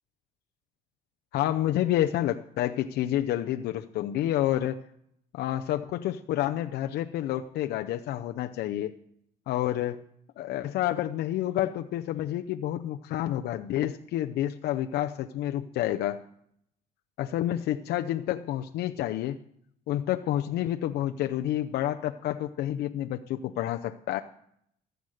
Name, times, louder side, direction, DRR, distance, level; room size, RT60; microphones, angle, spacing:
voice 1, 1.3-4.8 5.3-8.9 9.5-10.0 10.4-16.2 17.2-19.4 19.9-24.2, left 13 dB, 75° left, 6 dB, 0.6 m, -29 dB
14.5 x 8.0 x 6.4 m, 0.71 s
cardioid pair, 110°, 17 cm